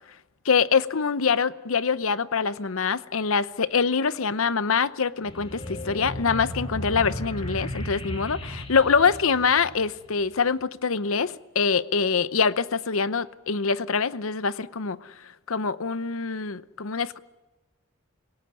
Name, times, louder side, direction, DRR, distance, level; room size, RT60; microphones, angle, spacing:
voice 1, 0.4-15.1 15.5-17.2, left 5 dB, 80° left, 0.8 m, -24 dB
Space Flight Sound Effect, 5.2-10.2, left 1 dB, 25° left, 2.7 m, -35 dB
26.5 x 17.5 x 9.9 m
head